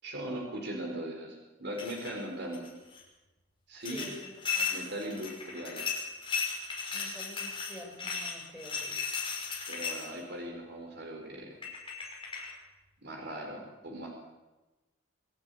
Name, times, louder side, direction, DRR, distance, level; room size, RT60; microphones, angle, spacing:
voice 1, 0.0-2.7 3.7-4.1 4.7-5.8 9.7-11.5 13.0-14.2, right 1 dB, 55° right, 2 dB, 4.3 m, -39 dB
sound 1, 1.8-2.2 2.5-3.0 3.9-10.2 11.2-11.3 11.6-12.5, left 5 dB, 25° left, 6.2 m, -36 dB
voice 2, 3.9-4.7 6.9-9.0, left 1 dB, 5° right, 1 dB, 5.4 m, -48 dB
24.5 x 12.5 x 9.7 m, 1.1 s
head